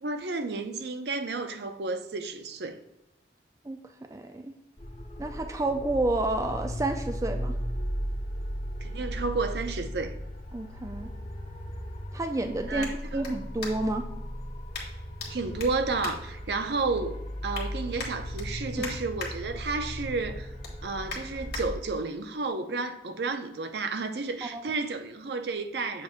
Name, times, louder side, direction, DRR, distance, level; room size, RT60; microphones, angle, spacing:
voice 1, 0.0-2.8 8.8-10.1 12.7-12.9 13.1-13.2 15.3-20.5 20.8-26.0, right 3 dB, 65° right, 0.5 m, -31 dB
voice 2, 4.1-4.5 5.2-7.5 10.5-11.1 12.1-14.1 18.8-18.9 24.4-24.6, right 2 dB, 20° right, 0.3 m, -30 dB
sound 1, 4.8-21.7, equal, 35° left, 0.7 m, -36 dB
sound 2, 12.8-14.1 14.7-15.3 15.6-16.9 17.2-17.7 18.0-19.3 19.7-20.0 20.3-21.6 22.2-22.3, left 4 dB, 60° left, 1.5 m, -41 dB
7.4 x 2.6 x 5.7 m
head